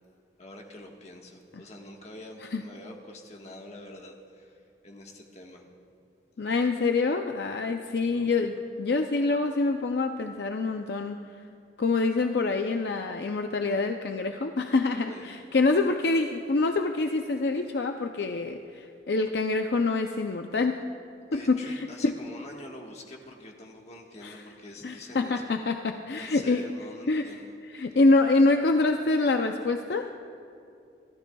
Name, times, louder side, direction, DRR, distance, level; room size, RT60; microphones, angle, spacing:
voice 1, 0.4-5.7 8.0-8.4 15.1-15.3 21.3-25.5 26.1-27.5, left 1 dB, 40° left, 1 dB, 1.4 m, -45 dB
voice 2, 6.4-11.2 11.8-20.8 21.3-22.1 24.2-24.4 24.8-26.6 27.1-27.3 27.6-30.1, left 3 dB, 65° left, 5 dB, 0.5 m, -26 dB
26.0 x 13.5 x 2.3 m, 2.5 s
head